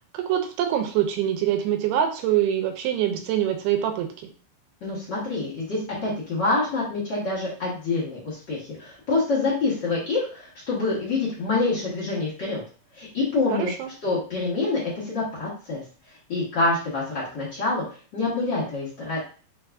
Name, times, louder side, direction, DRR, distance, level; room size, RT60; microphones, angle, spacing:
voice 1, 0.1-4.1 13.5-13.9, right 10 dB, 80° right, 5 dB, 2.6 m, -24 dB
voice 2, 4.8-12.6 12.9-13.7 14.0-15.8 16.3-17.8 18.1-19.2, left 3 dB, 65° left, -8 dB, 1.1 m, -26 dB
5.9 x 2.5 x 3.4 m, 0.39 s
omnidirectional pair, 4.6 m